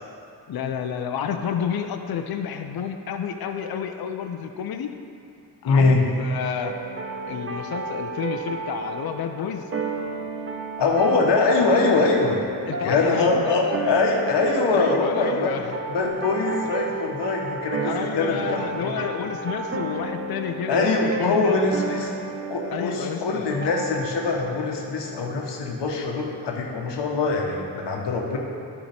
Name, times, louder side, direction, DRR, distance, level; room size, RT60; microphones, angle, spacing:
voice 1, 0.5-4.9 5.6-6.7 7.3-9.7 12.7-13.9 14.7-15.8 17.8-21.6 22.7-23.4, left 7 dB, 60° left, 6 dB, 0.6 m, -30 dB
voice 2, 5.6-6.0 10.8-12.4 12.8-15.6 15.9-18.9 20.7-22.1 22.5-28.4, left 3 dB, 80° left, 0 dB, 1.2 m, -23 dB
sound 1, 6.6-25.6, right 3 dB, 35° right, 0.8 m, -32 dB
11.5 x 4.8 x 3.4 m, 2.5 s
cardioid pair, 60°, 42 cm